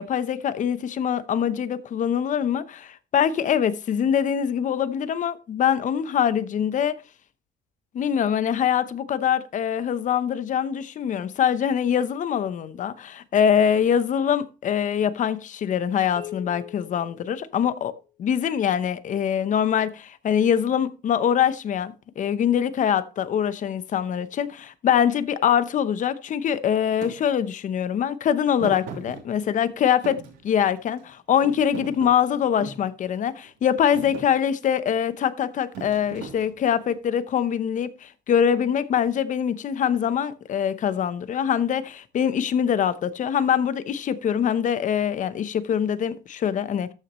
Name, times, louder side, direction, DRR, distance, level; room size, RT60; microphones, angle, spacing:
voice 1, 0.0-7.0 7.9-17.9 18.2-46.9, left 8 dB, 50° left, 0.8 m, -24 dB
sound 1, 16.2-18.1, left 16 dB, 70° left, 3.5 m, -43 dB
Thump thud, 27.0-27.2 28.6-29.7 30.0-31.0 31.4-32.9 33.4-33.7 33.9-34.3 35.7-36.8, right 6 dB, 85° right, 2.9 m, -38 dB
13.5 x 6.1 x 3.0 m
cardioid pair, 110°, 17 cm